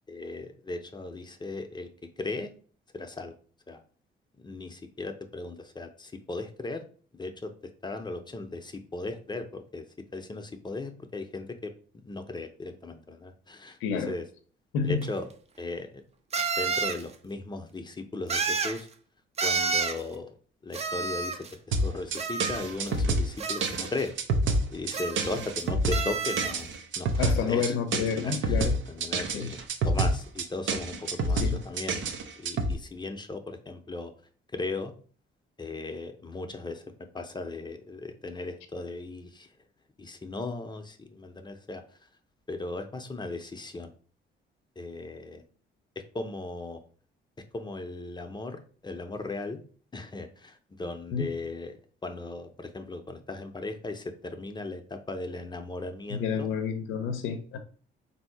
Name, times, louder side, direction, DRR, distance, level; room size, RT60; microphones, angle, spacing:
voice 1, 0.1-1.9 2.2-2.5 2.9-3.4 3.7-3.8 4.4-6.8 7.1-7.5 7.8-9.9 10.1-11.7 12.1-14.3 14.8-15.3 15.6-16.0 16.6-18.9 19.4-20.4 20.6-24.1 24.7-26.7 27.0-34.1 34.5-34.9 35.6-36.8 37.1-39.5 40.0-41.8 42.5-43.9 44.8-45.4 46.0-46.8 47.5-49.6 49.9-51.8 52.0-56.5, left 2 dB, 20° left, 0.6 m, -37 dB
voice 2, 13.8-14.1 14.7-15.0 27.2-28.8 29.3-29.5 31.4-31.6 51.1-51.3 56.1-57.6, left 6 dB, 90° left, 0.6 m, -29 dB
sound 1, 15.0-15.1 16.3-17.0 18.3-18.8 19.4-20.0 20.7-21.5 22.1-23.0 23.4-24.0 24.9-25.6 25.9-26.6, right 5 dB, 35° right, 0.5 m, -30 dB
sound 2, 21.7-32.7, right 2 dB, 75° right, 0.7 m, -28 dB
3.7 x 2.7 x 4.5 m
cardioid pair, 90°, 20 cm